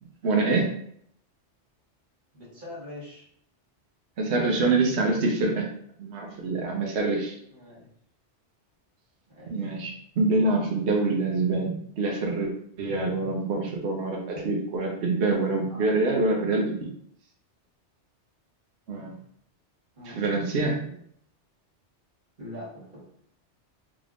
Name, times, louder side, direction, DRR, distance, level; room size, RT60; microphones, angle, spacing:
voice 1, 0.2-0.7 4.2-5.7 6.0-7.3 9.5-16.7 18.9-19.2 20.0-21.0, right 3 dB, 70° right, -1 dB, 1.0 m, -25 dB
voice 2, 2.3-3.2 7.5-7.9 9.3-9.6 14.3-14.5 15.7-15.9 19.9-20.3 22.4-23.1, left 1 dB, 45° right, -6 dB, 1.8 m, -42 dB
3.7 x 3.5 x 2.5 m, 0.65 s
omnidirectional pair, 1.2 m